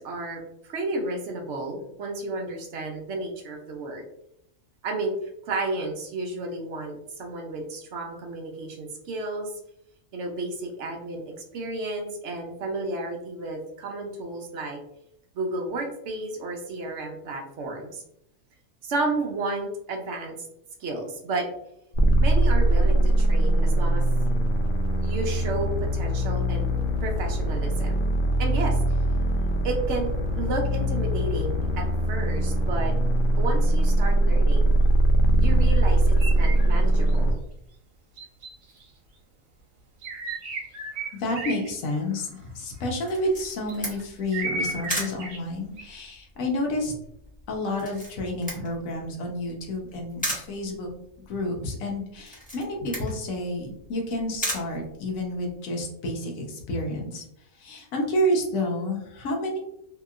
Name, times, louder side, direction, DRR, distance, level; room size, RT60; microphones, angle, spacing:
voice 1, 0.0-4.0 4.8-9.5 10.1-14.8 15.3-18.0 18.8-20.5 20.8-21.5 22.2-24.0 25.0-26.7 27.0-28.0 28.4-28.8 29.6-30.1 30.4-32.9 33.4-34.7 35.4-37.4, right 2 dB, 65° right, 2 dB, 0.9 m, -32 dB
sound 1, 21.9-37.3, right 1 dB, 60° left, 0.6 m, -22 dB
sound 2, 36.1-36.7 37.1-37.2 38.2-38.8 40.0-41.8 42.1-42.4 43.4-44.0 44.3-45.4 45.8-45.9, right 3 dB, 80° right, 1.2 m, -33 dB
voice 2, 41.1-46.9 47.5-50.9 51.3-57.2 57.6-59.6, left 1 dB, 80° left, 1 dB, 1.2 m, -29 dB
Camera, 43.1-55.6, equal, 5° left, 0.8 m, -37 dB
2.8 x 2.8 x 2.3 m, 0.77 s
omnidirectional pair, 1.4 m